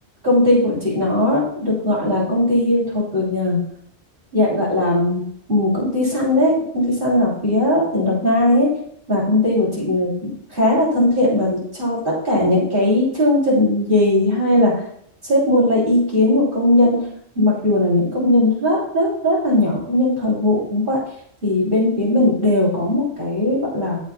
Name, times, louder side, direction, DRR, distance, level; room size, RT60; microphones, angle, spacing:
voice 1, 0.2-3.6 4.3-5.2 5.5-8.7 9.1-14.7 15.2-17.1 17.3-21.0 21.4-24.0, left 1 dB, 50° right, -5 dB, 3.1 m, -18 dB
14.5 x 6.5 x 2.2 m, 0.65 s
omnidirectional pair, 1.1 m